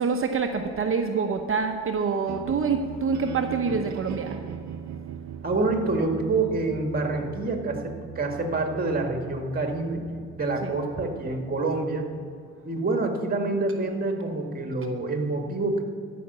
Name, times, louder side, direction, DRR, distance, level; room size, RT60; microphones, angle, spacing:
voice 1, 0.0-4.4 10.6-10.8, right 5 dB, 45° right, 5 dB, 0.9 m, -26 dB
sound 1, 2.2-12.3, right 9 dB, 70° right, 0.8 m, -40 dB
voice 2, 5.4-10.0 10.4-12.0 12.6-15.8, right 3 dB, 30° right, 3 dB, 2.0 m, -27 dB
12.5 x 6.0 x 7.9 m, 2.2 s
cardioid pair, 90°, 30 cm